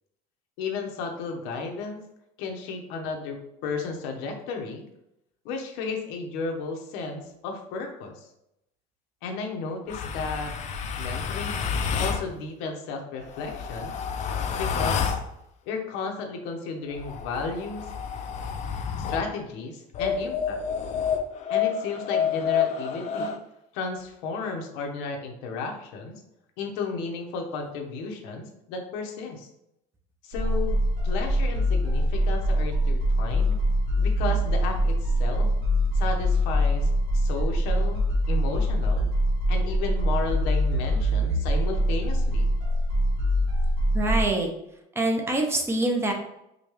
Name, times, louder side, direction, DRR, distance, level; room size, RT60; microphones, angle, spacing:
voice 1, 0.6-2.0 2.4-4.9 5.4-8.1 9.2-10.5 11.0-11.6 11.9-13.9 14.6-15.2 15.7-17.9 19.1-20.6 21.5-23.4 23.7-26.2 26.6-29.5 30.2-30.8 31.0-33.6 34.0-35.5 35.9-39.1 39.5-42.5, left 4 dB, 85° left, 3 dB, 0.8 m, -33 dB
sound 1, 9.9-12.3 13.2-15.3 16.9-19.3 19.9-23.4, left 7 dB, 40° left, 0.4 m, -29 dB
sound 2, 30.3-44.2, equal, 75° right, 1.0 m, -24 dB
voice 2, 43.9-44.5 44.9-46.1, right 2 dB, 15° right, 2 dB, 0.5 m, -25 dB
5.0 x 2.3 x 3.1 m, 0.82 s
cardioid pair, 150°, 18 cm